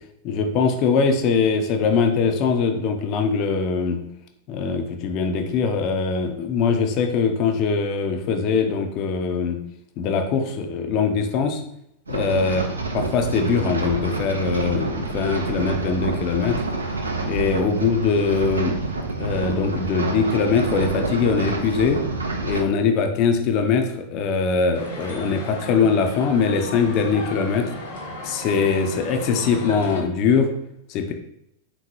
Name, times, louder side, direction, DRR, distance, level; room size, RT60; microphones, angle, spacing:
voice 1, 0.2-4.0 4.5-9.6 10.0-11.6 12.1-12.7 12.9-16.6 17.2-18.8 19.2-22.0 22.4-27.7 28.2-30.5 30.9-31.1, left 5 dB, 40° left, 5 dB, 0.5 m, -22 dB
sound 1, 12.1-22.6, right 3 dB, 75° right, 0.5 m, -27 dB
sound 2, 24.7-30.0, left 1 dB, 60° left, 1.0 m, -35 dB
3.6 x 3.0 x 2.7 m, 0.75 s
figure-of-eight pair, 90°, 0 cm